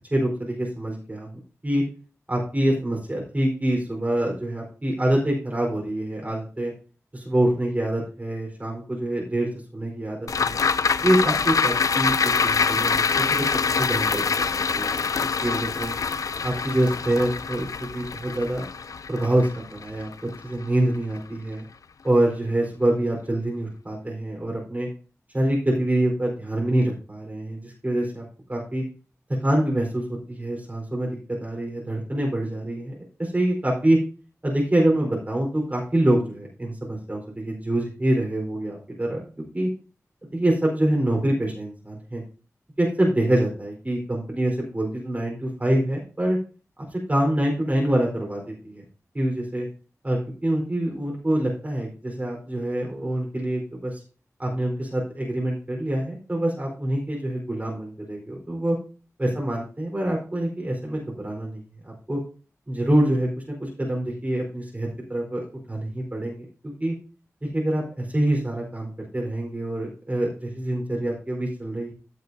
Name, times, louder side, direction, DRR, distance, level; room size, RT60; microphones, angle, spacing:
voice 1, 0.1-1.3 1.6-1.8 2.3-6.7 7.1-10.6 11.0-13.0 13.3-13.5 13.8-15.0 15.4-15.9 16.4-18.6 19.1-21.6 22.0-24.9 25.3-28.2 28.5-28.8 29.4-31.1 31.4-32.9 33.2-34.0 34.4-39.2 39.5-39.7 40.3-42.2 42.8-46.4 46.9-48.8 49.1-49.7 50.0-54.0 54.4-58.8 59.2-62.2 62.7-66.9 67.4-71.9, right 1 dB, 30° right, -2 dB, 4.3 m, -25 dB
sound 1, 10.3-20.8 21.2-21.3, left 5 dB, 90° left, 0.5 m, -25 dB
15.5 x 7.8 x 2.8 m, 0.36 s
wide cardioid pair, 80°, 6 cm